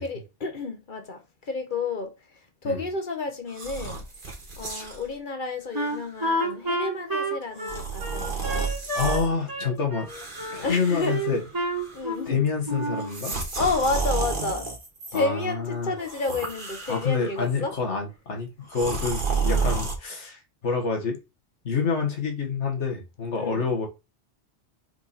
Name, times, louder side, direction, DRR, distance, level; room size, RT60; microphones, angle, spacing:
voice 1, 0.0-4.0 4.6-8.7 10.5-11.2 11.9-12.4 13.6-14.7 15.1-17.7 19.5-19.7 23.4-23.7, left 3 dB, 50° left, 1.2 m, -30 dB
sound 1, 3.5-5.1 5.7-6.0 7.6-9.3 10.1-11.5 11.8-12.2 13.0-15.2 16.0-17.4 18.7-20.0, right 4 dB, 45° right, 1.7 m, -31 dB
Wind instrument woodwind instrument, 5.7-9.2 9.5-10.6 11.1-12.3 12.7-13.1, right 1 dB, 20° right, 1.9 m, -29 dB
voice 2, 8.9-10.1 10.5-11.4 12.3-13.4 15.1-15.9 16.9-21.2 21.6-23.9, left 5 dB, 85° left, 1.9 m, -27 dB
4.8 x 4.7 x 4.2 m
omnidirectional pair, 1.2 m